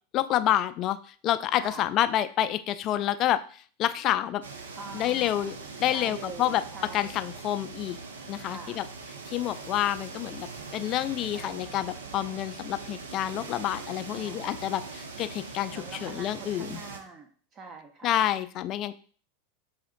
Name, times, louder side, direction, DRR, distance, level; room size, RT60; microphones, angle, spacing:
voice 1, 0.1-4.4 4.9-6.6 6.9-8.0 8.3-8.9 9.3-10.5 10.7-16.8 18.0-18.9, left 12 dB, 45° left, 12 dB, 0.3 m, -28 dB
voice 2, 1.5-1.9 4.7-5.6 5.9-7.1 8.4-8.8 11.3-11.7 14.1-14.5 15.7-18.2, right 4 dB, 35° right, 4 dB, 0.6 m, -44 dB
sound 1, 4.4-17.0, right 4 dB, 85° right, 0.6 m, -42 dB
5.8 x 2.8 x 2.5 m, 0.43 s
hypercardioid pair, 95°, 0 cm